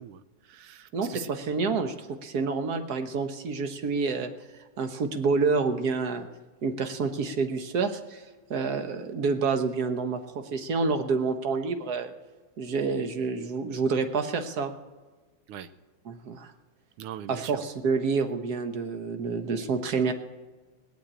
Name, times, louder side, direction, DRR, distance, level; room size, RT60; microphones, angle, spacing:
voice 1, 0.0-1.3 15.5-15.7 17.0-17.6, right 10 dB, 80° right, 13 dB, 1.6 m, -41 dB
voice 2, 0.9-4.3 4.8-6.3 6.6-12.1 12.6-14.7 16.0-16.5 17.3-20.1, right 4 dB, 55° right, 7 dB, 1.3 m, -28 dB
19.5 x 7.4 x 8.8 m, 1.3 s
omnidirectional pair, 2.4 m